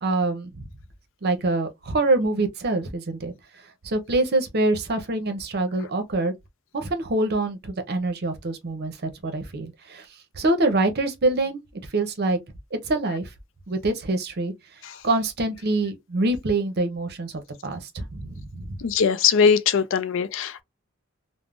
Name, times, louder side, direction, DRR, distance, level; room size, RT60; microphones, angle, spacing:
voice 1, 0.0-0.7 1.2-3.3 3.8-6.3 6.7-10.1 10.4-11.6 11.9-12.4 12.7-13.3 13.7-14.5 15.0-18.8, right 2 dB, 50° right, 0.7 m, -25 dB
voice 2, 18.8-20.6, left 6 dB, 60° left, 0.4 m, -20 dB
3.4 x 2.0 x 2.4 m
head